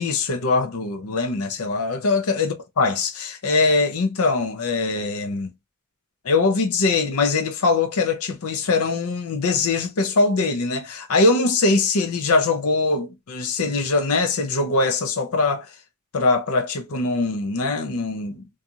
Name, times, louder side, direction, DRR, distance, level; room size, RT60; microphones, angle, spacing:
voice 1, 0.0-5.5 6.2-15.7 16.1-18.5, left 3 dB, 80° left, 0.6 m, -22 dB
2.6 x 2.4 x 2.7 m
head